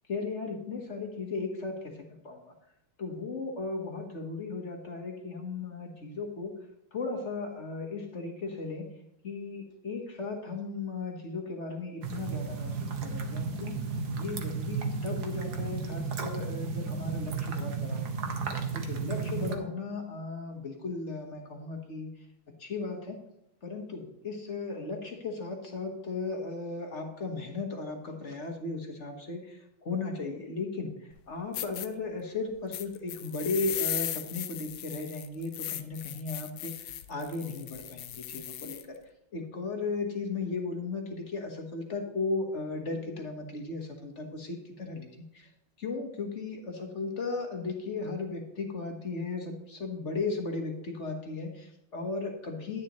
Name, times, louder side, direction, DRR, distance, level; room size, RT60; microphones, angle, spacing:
voice 1, 0.1-2.5 3.0-6.5 6.9-8.9 9.2-13.8 14.2-18.3 18.7-22.1 22.6-23.2 23.6-38.9 39.3-45.5 45.8-52.8, left 3 dB, 40° left, 3 dB, 1.3 m, -36 dB
sound 1, 12.0-19.6, right 5 dB, 55° right, 1.5 m, -33 dB
sound 2, 31.1-31.2 31.5-31.9 32.7-38.8, left 12 dB, 80° left, 1.5 m, -37 dB
11.0 x 9.8 x 3.0 m, 0.82 s
omnidirectional pair, 2.2 m